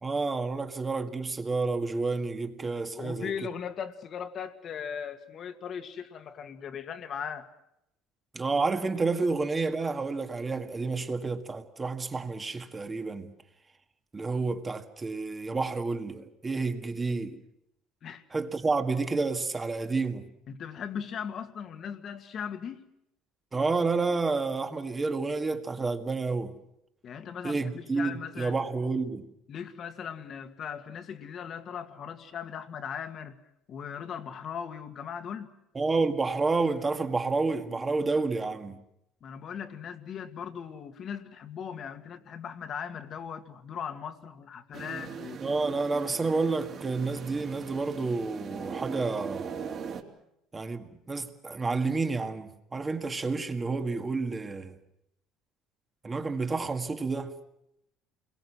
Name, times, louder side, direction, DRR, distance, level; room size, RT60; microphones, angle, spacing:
voice 1, 0.0-3.3 8.3-13.3 14.1-17.4 18.3-20.3 23.5-26.5 27.4-29.3 35.7-38.8 45.4-49.5 50.5-54.8 56.0-57.3, right 3 dB, 20° right, 1.8 m, -30 dB
voice 2, 2.9-7.5 18.0-18.2 20.5-22.8 27.0-28.6 29.5-33.4 33.7-35.5 39.2-45.4, left 7 dB, 45° left, 2.0 m, -38 dB
meditation pad, 44.7-50.0, right 6 dB, 45° right, 3.3 m, -40 dB
29.0 x 22.0 x 6.2 m
cardioid pair, 120°, 0 cm